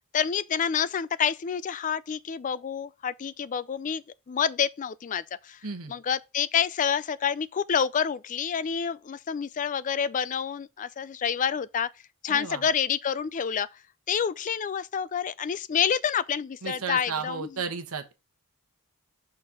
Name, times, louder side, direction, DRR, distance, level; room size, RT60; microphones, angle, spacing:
voice 1, 0.1-5.6 5.9-11.9 12.2-13.7 14.1-17.5, left 7 dB, 35° left, 0.3 m, -28 dB
voice 2, 5.6-6.0 12.3-12.7 16.6-18.1, right 5 dB, 70° right, 1.1 m, -34 dB
5.9 x 4.3 x 4.8 m
head